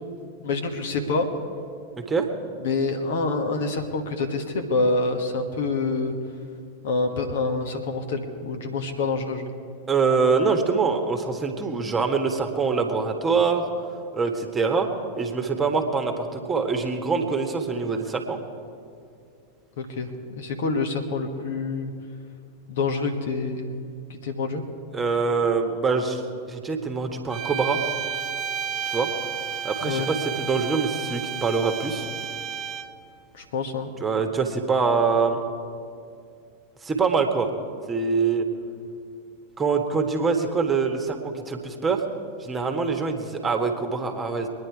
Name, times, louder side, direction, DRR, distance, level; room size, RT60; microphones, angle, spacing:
voice 1, 0.4-1.3 2.6-6.2 6.8-9.5 19.8-21.9 22.7-23.7 24.1-24.6 29.8-30.1 33.3-33.9, left 3 dB, 55° left, 5 dB, 1.5 m, -27 dB
voice 2, 9.9-13.6 14.1-14.9 15.1-18.4 24.9-26.2 26.5-27.8 28.9-29.1 29.6-32.1 34.0-35.4 36.8-37.5 37.9-38.4 39.6-41.2 41.5-42.0 42.4-44.5, right 5 dB, 15° right, 4 dB, 1.6 m, -24 dB
sound 1, 27.3-33.1, right 8 dB, 35° right, 0.7 m, -31 dB
23.0 x 10.0 x 4.7 m, 2.4 s
figure-of-eight pair, 90°, 0 cm